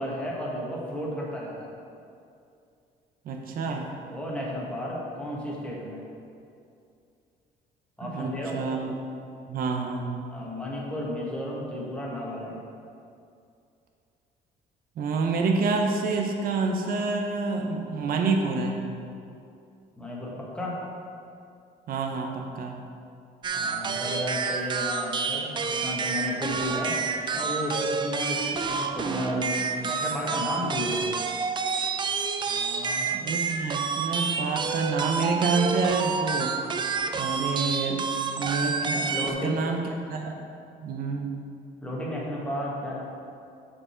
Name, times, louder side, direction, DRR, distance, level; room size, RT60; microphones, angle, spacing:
voice 1, 0.0-1.8 4.1-6.0 8.0-8.6 10.3-12.6 20.0-20.8 23.5-26.9 27.3-31.1 32.4-33.1 39.1-39.6 41.8-43.0, left 1 dB, 5° left, -5 dB, 1.5 m, -33 dB
voice 2, 3.2-3.9 8.0-8.8 9.5-10.1 15.0-18.8 21.9-22.8 33.1-36.6 37.1-39.8 40.1-40.4 40.8-41.3, right 4 dB, 60° right, 3 dB, 0.8 m, -28 dB
sound 1, 23.4-39.3, right 5 dB, 30° right, 0.4 m, -29 dB
6.3 x 4.8 x 4.5 m, 2.5 s
cardioid pair, 110°, 17 cm